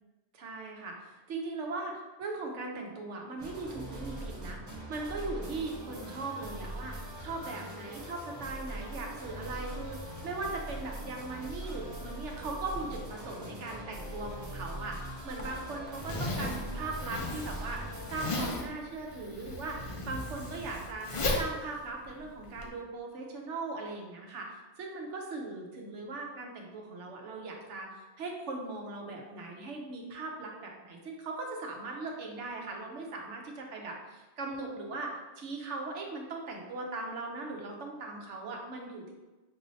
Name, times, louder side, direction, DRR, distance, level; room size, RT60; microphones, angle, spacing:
voice 1, 0.3-4.6 4.9-39.1, right 3 dB, 85° right, 1 dB, 1.1 m, -39 dB
sound 1, 3.4-18.2, right 1 dB, 20° right, 0.6 m, -42 dB
Zipper (clothing), 15.3-22.7, left 2 dB, 45° left, 0.4 m, -36 dB
6.1 x 3.1 x 2.6 m, 1.2 s
omnidirectional pair, 1.2 m